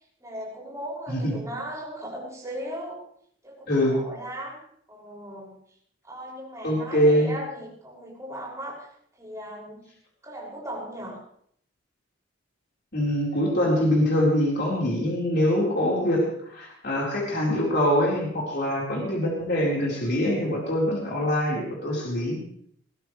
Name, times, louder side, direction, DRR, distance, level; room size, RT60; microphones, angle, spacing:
voice 1, 0.2-3.0 3.4-4.6 4.9-5.6 6.0-8.8 9.2-9.9 10.2-11.2, equal, 15° right, -5 dB, 6.3 m, -37 dB
voice 2, 3.7-4.0 6.6-7.3 12.9-22.4, equal, 55° left, -4 dB, 4.5 m, -24 dB
21.0 x 16.0 x 3.3 m, 0.67 s
head